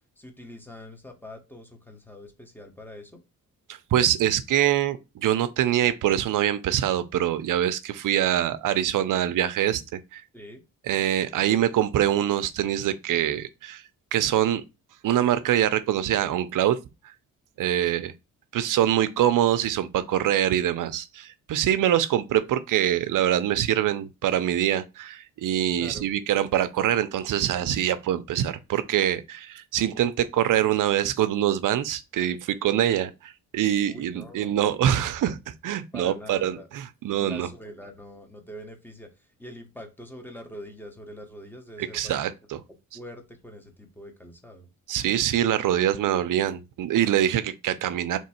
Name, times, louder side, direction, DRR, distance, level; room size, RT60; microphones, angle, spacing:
voice 1, 0.2-3.2 10.3-10.6 25.8-26.1 33.9-34.6 35.9-36.7 37.2-42.3 42.9-44.7, left 1 dB, 5° left, 1.0 m, -44 dB
voice 2, 3.9-10.2 10.9-13.8 14.1-14.6 15.0-16.8 17.0-17.1 17.6-18.1 18.5-37.5 41.8-42.3 44.9-48.2, right 11 dB, 60° right, 0.6 m, -24 dB
3.6 x 3.0 x 4.3 m
cardioid pair, 110°, 35 cm